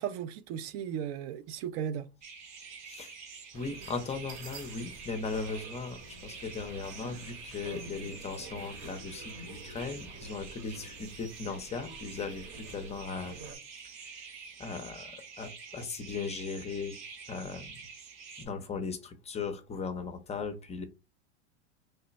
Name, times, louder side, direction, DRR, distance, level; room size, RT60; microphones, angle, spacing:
voice 1, 0.0-2.1, right 9 dB, 55° right, 0.5 m, -36 dB
sound 1, 2.2-18.4, right 5 dB, 85° right, 0.9 m, -47 dB
voice 2, 3.5-13.4 14.6-17.0 17.3-17.7 18.4-20.8, left 4 dB, 20° left, 0.5 m, -38 dB
sound 2, 3.5-13.6, right 2 dB, 35° right, 0.9 m, -48 dB
3.2 x 2.1 x 3.9 m
supercardioid pair, 120°, 34 cm